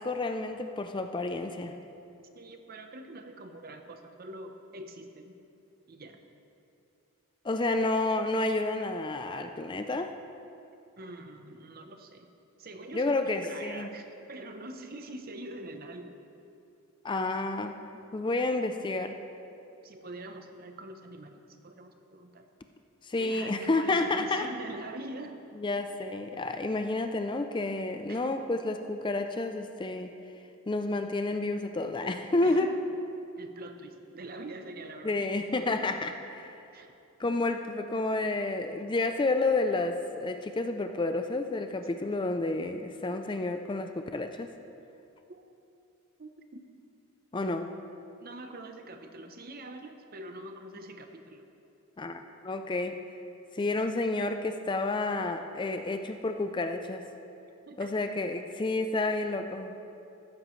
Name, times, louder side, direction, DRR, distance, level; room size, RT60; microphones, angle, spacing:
voice 1, 0.0-1.7 7.4-10.1 12.9-13.9 17.0-17.8 18.1-19.2 23.0-24.5 25.6-30.1 30.7-32.7 35.0-36.1 36.4-36.6 37.2-44.5 47.3-47.7 52.0-53.0 53.5-57.0 57.8-59.7, left 2 dB, 20° left, 7 dB, 0.4 m, -30 dB
voice 2, 2.3-5.4 5.9-6.2 7.8-8.0 11.0-12.3 12.6-16.1 19.8-22.5 23.2-25.4 28.1-28.4 32.4-32.8 33.4-35.2 35.7-35.9 36.7-36.9 45.3-45.4 46.2-46.6 48.2-51.5 57.7-57.9, right 2 dB, 40° right, 6 dB, 0.7 m, -44 dB
14.5 x 12.5 x 3.1 m, 2.7 s
head